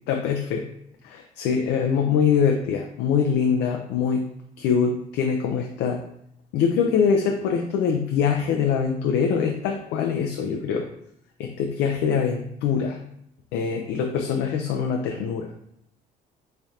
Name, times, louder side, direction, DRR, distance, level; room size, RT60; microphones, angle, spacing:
voice 1, 0.1-0.6 1.0-4.2 4.6-6.0 6.5-10.9 11.4-13.0 13.5-15.5, left 6 dB, 85° left, 2 dB, 0.4 m, -23 dB
3.6 x 3.2 x 2.8 m, 0.73 s
cardioid pair, 110°, 17 cm